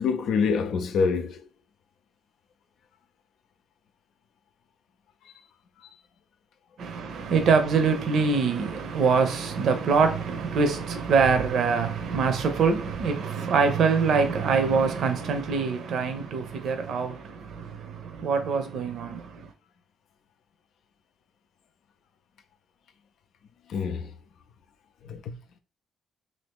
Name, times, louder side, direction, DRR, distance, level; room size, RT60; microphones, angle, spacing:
voice 1, 0.0-1.4 23.7-24.1 25.1-25.4, left 5 dB, 70° left, 0.4 m, -26 dB
voice 2, 6.8-19.5, right 5 dB, 70° right, 0.6 m, -24 dB
2.7 x 2.5 x 3.6 m
cardioid pair, 90°, 0 cm